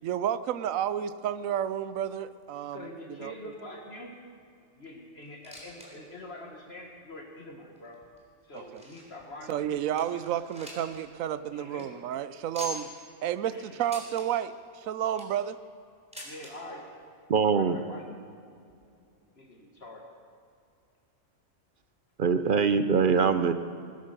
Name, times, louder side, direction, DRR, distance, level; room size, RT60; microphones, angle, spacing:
voice 1, 0.0-3.3 8.5-8.8 9.5-12.9 13.2-15.6, right 10 dB, 85° right, 13 dB, 1.0 m, -31 dB
voice 2, 2.7-4.1 4.8-8.0 8.4-9.8 11.5-11.9 13.5-13.8 16.2-16.9 17.5-18.1 19.4-20.0, left 1 dB, 50° left, 1 dB, 1.8 m, -44 dB
sound 1, 5.2-5.9 6.2-6.3 6.9-7.0 7.8-9.2 9.6-9.7 10.0-11.0 11.3-11.4 11.7-11.8 12.5-13.0 13.8-14.3 14.9-15.4 16.1-16.5 17.5-17.6 17.8-17.9 18.7-18.8, left 1 dB, 5° right, 3.7 m, -43 dB
voice 3, 17.3-17.8 22.2-23.5, right 6 dB, 50° right, 10 dB, 0.7 m, -23 dB
20.0 x 11.0 x 6.7 m, 2.5 s
omnidirectional pair, 1.4 m